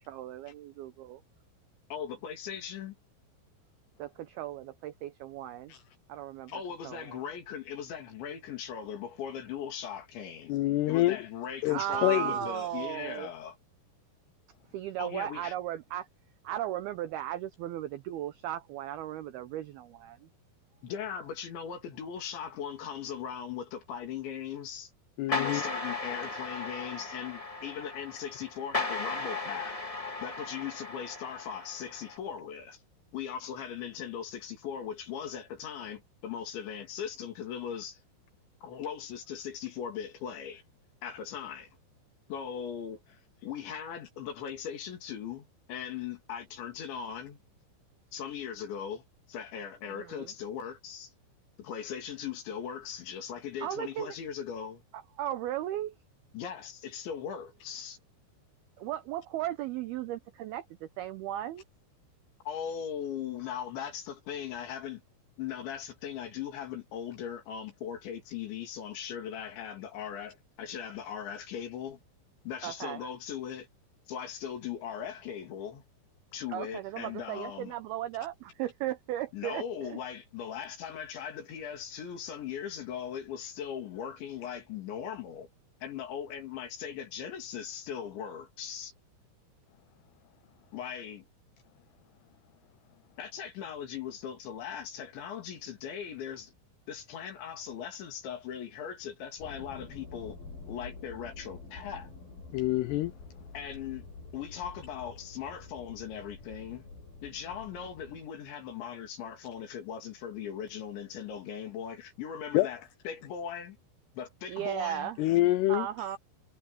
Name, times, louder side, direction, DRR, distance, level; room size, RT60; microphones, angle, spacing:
voice 1, 0.1-1.2 4.0-5.7 6.1-6.5 6.8-7.2 11.7-13.3 14.7-16.1 16.4-20.3 49.9-50.3 53.6-54.2 54.9-55.9 58.8-61.6 72.6-73.1 76.5-80.0 114.5-115.2 115.7-116.2, right 12 dB, 85° right, 2.2 m, -36 dB
voice 2, 1.9-3.0 6.5-10.5 10.9-13.6 15.0-15.5 20.8-24.9 25.3-29.8 30.2-32.8 33.1-38.0 38.6-40.6 41.0-41.7 42.3-47.4 48.1-51.1 51.6-54.8 56.3-58.0 62.5-65.0 65.4-72.0 72.5-73.7 74.1-75.8 76.3-77.7 79.3-85.5 85.8-88.9 90.7-91.3 93.2-96.5 96.9-100.4 100.7-102.1 103.5-104.1 104.3-106.9 107.2-113.8 114.2-115.1, left 8 dB, 70° left, 5.3 m, -39 dB
voice 3, 10.5-11.2 11.6-12.3 25.2-25.6 102.5-103.1 112.5-112.7 115.2-115.9, left 16 dB, 85° left, 2.3 m, -26 dB
sound 1, 25.3-32.2, left 3 dB, 15° left, 1.3 m, -36 dB
sound 2, 99.4-108.3, left 3 dB, 50° left, 9.2 m, -48 dB
omnidirectional pair, 5.5 m